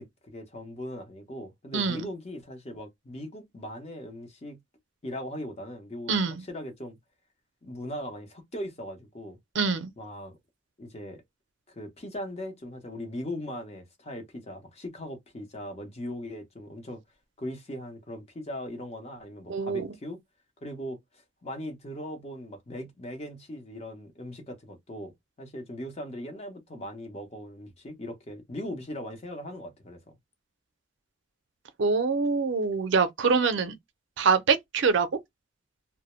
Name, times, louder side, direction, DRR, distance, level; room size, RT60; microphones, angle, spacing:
voice 1, 0.0-4.6 5.0-7.0 7.6-9.4 10.0-10.4 10.8-11.2 11.7-17.0 17.4-20.2 20.6-21.0 21.4-25.1 25.4-30.0, left 1 dB, 35° left, 0.7 m, -39 dB
voice 2, 1.7-2.1 6.1-6.4 9.6-9.9 19.5-19.9 31.8-33.8 34.2-35.1, right 5 dB, 75° right, 0.5 m, -24 dB
2.2 x 2.0 x 2.9 m
head